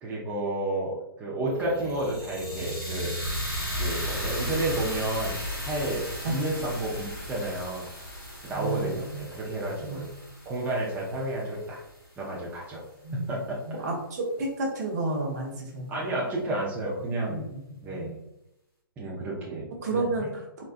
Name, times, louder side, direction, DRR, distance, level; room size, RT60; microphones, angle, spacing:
voice 1, 0.0-3.2 3.8-5.4 5.6-7.9 8.4-10.0 10.5-11.8 12.2-12.8 13.3-13.6 15.9-17.5 17.8-18.1 19.0-20.0, right 1 dB, 15° right, -5 dB, 0.6 m, -31 dB
sound 1, 1.5-11.7, equal, 75° left, 1.5 m, -35 dB
voice 2, 8.5-9.2 9.8-10.1 13.0-13.3 13.7-16.1 17.3-18.1 19.8-20.6, right 2 dB, 45° right, 0 dB, 0.9 m, -32 dB
4.1 x 2.2 x 2.5 m, 0.84 s
figure-of-eight pair, 130°, 12 cm